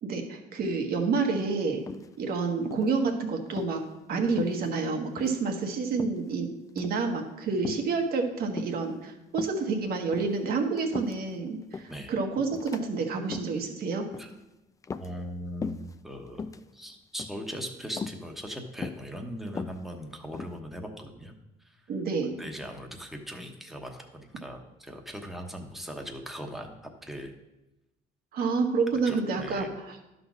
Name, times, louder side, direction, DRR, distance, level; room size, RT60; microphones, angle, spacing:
voice 1, 0.0-1.8 2.2-3.8 4.1-6.5 6.7-14.1 21.9-22.3 28.3-30.0, right 4 dB, 65° right, 4 dB, 1.4 m, -29 dB
sound 1, 1.9-2.3 2.7-3.0 3.5-3.8 4.4-4.9 5.2-5.4 6.0-6.3 6.7-7.0 7.6-7.9 8.6-8.9 9.3-9.6 10.1-11.3 11.7-12.0 12.5-12.8 13.2-13.6 14.1-14.4 14.8-15.3 15.6-15.9 16.3-16.6 17.2-17.5 18.0-18.2 18.8-19.1 19.5-20.6, left 5 dB, 20° left, 0.3 m, -38 dB
voice 2, 15.0-16.4 16.7-21.3 21.6-21.8 22.3-27.3 29.0-29.7, equal, ahead, 3 dB, 1.1 m, -39 dB
11.5 x 4.0 x 6.1 m, 0.97 s
cardioid pair, 110°, 17 cm